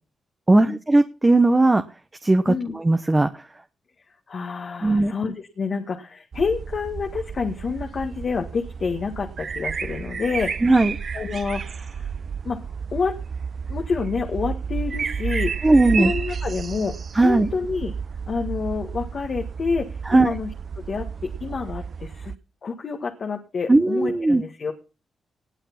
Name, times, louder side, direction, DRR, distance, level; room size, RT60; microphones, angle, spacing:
voice 1, 0.5-1.8 2.2-3.4 4.8-5.1 10.6-10.9 15.6-16.1 17.1-17.5 20.1-20.3 23.7-24.4, right 2 dB, 25° right, 8 dB, 1.0 m, -18 dB
voice 2, 4.1-10.6 11.1-12.1 12.4-12.6 12.9-13.2 13.7-17.0 17.2-17.9 18.3-20.5 20.8-22.3 22.6-24.7, left 5 dB, 60° left, 3 dB, 1.6 m, -28 dB
sound 1, 6.3-22.3, right 6 dB, 60° right, 0.6 m, -31 dB
19.0 x 6.6 x 5.9 m, 0.34 s
supercardioid pair, 55°, 0 cm